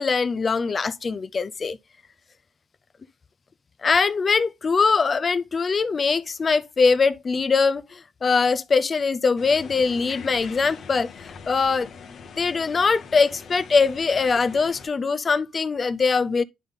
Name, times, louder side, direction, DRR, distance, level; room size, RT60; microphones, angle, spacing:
voice 1, 0.0-1.8 3.8-11.9 12.4-16.4, left 4 dB, 40° left, 0.4 m, -22 dB
sound 1, 9.4-14.9, left 6 dB, 60° left, 0.9 m, -43 dB
10.5 x 3.9 x 3.5 m
cardioid pair, 90°, 0 cm